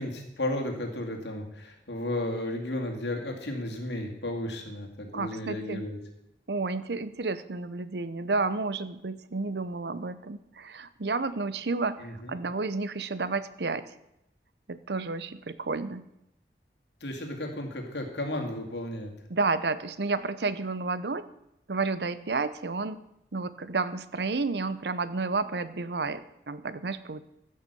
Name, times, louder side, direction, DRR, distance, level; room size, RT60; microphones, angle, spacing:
voice 1, 0.0-6.0 12.0-12.3 17.0-19.1, left 1 dB, 85° left, 2 dB, 2.4 m, -33 dB
voice 2, 5.1-5.8 6.5-13.8 14.7-16.0 19.3-21.3 21.7-23.0 23.3-27.2, right 3 dB, 75° right, 14 dB, 0.7 m, -31 dB
14.5 x 6.7 x 6.8 m, 0.84 s
head